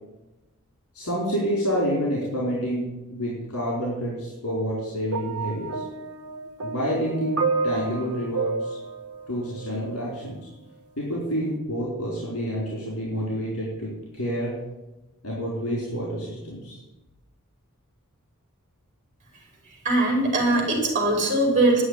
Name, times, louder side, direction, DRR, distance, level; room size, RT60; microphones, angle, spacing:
voice 1, 0.9-5.8 6.6-8.8 9.3-10.4 11.0-14.6 15.2-16.8, equal, 80° left, -4 dB, 4.7 m, -28 dB
sound 1, 5.1-10.2 11.1-11.3, right 4 dB, 75° right, 1.4 m, -30 dB
voice 2, 19.8-21.8, right 2 dB, 35° right, 0 dB, 5.0 m, -21 dB
11.0 x 8.0 x 9.9 m, 1.0 s
head